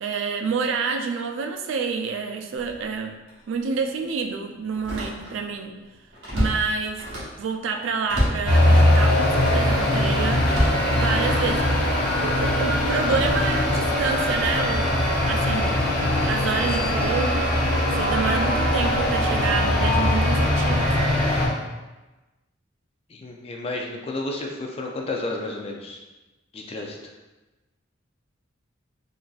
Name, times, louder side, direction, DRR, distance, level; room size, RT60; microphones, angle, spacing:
voice 1, 0.0-3.2 3.5-5.7 6.3-7.0 7.4-10.4 10.9-11.8 12.2-14.9 15.3-15.8 16.3-17.4 18.0-21.2, right 5 dB, 85° right, 5 dB, 0.3 m, -28 dB
Slam, 2.6-2.8 3.3-3.4 4.7-5.5 5.9-7.4 8.1-8.5 9.2-9.7 10.4-11.5 12.1-12.4, equal, 65° right, 1.0 m, -28 dB
sound 1, 8.4-21.5, left 1 dB, 55° left, 0.8 m, -21 dB
voice 2, 23.1-26.0 26.5-27.0, left 2 dB, 30° left, 1 dB, 0.3 m, -31 dB
3.8 x 2.4 x 2.3 m, 1.1 s
head